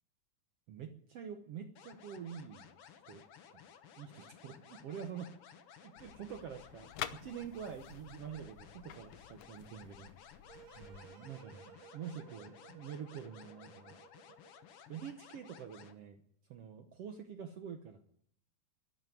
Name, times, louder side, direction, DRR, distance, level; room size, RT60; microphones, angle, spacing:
voice 1, 0.7-2.7 3.1-3.2 3.5-3.6 4.0-5.3 5.7-10.3 10.8-14.0 14.9-16.2 16.5-18.0, right 8 dB, 65° right, 6 dB, 1.5 m, -46 dB
sound 1, 1.8-15.9, left 8 dB, 60° left, 1.6 m, -57 dB
sound 2, 6.0-11.0, left 11 dB, 80° left, 1.4 m, -49 dB
sound 3, 10.5-14.8, right 7 dB, 90° right, 3.0 m, -58 dB
12.5 x 12.0 x 9.2 m, 0.67 s
omnidirectional pair, 3.8 m